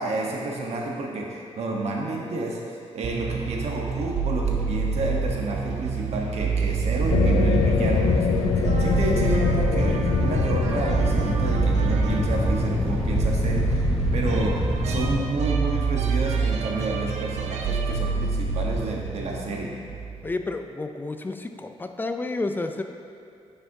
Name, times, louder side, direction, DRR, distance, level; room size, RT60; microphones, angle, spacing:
voice 1, 0.0-2.6 2.9-8.3 8.5-14.5 14.8-19.7, right 2 dB, 70° right, -1 dB, 1.1 m, -30 dB
sound 1, 3.0-20.3, right 5 dB, 85° right, 0.5 m, -27 dB
sound 2, 7.0-15.2, left 1 dB, ahead, 0.8 m, -26 dB
sound 3, 7.1-14.4, left 8 dB, 90° left, 0.4 m, -28 dB
voice 2, 20.2-22.8, left 2 dB, 15° left, 7 dB, 0.4 m, -30 dB
9.5 x 5.8 x 2.7 m, 2.6 s
cardioid pair, 125°, 11 cm